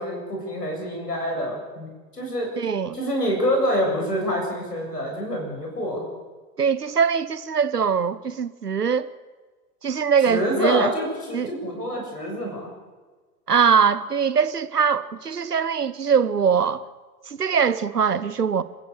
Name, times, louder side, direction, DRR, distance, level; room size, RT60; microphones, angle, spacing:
voice 1, 0.0-2.5 2.9-6.0 10.3-12.7, equal, 85° left, 7.3 m, -26 dB
voice 2, 2.6-3.0 6.6-9.1 9.8-10.9 11.3-11.5 13.5-16.8 17.3-18.6, right 6 dB, 85° right, 1.1 m, -22 dB
27.5 x 15.0 x 6.7 m
figure-of-eight pair, 90°, 46 cm